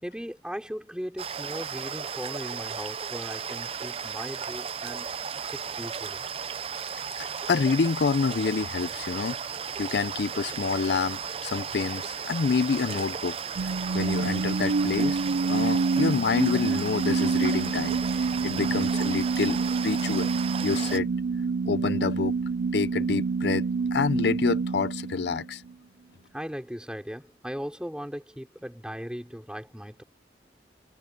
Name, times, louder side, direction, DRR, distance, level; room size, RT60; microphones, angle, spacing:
voice 1, 0.0-5.1 5.5-6.3 18.5-18.8 26.3-30.0, equal, 5° right, 4.1 m, -38 dB
sound 1, 1.2-21.0, right 7 dB, 35° right, 0.5 m, -35 dB
voice 2, 7.2-9.4 9.8-13.4 13.9-15.2 15.5-20.3 20.6-21.1 21.7-22.4 22.7-25.6, left 4 dB, 70° left, 0.5 m, -27 dB
sound 2, 13.6-25.7, right 4 dB, 85° right, 0.5 m, -27 dB
head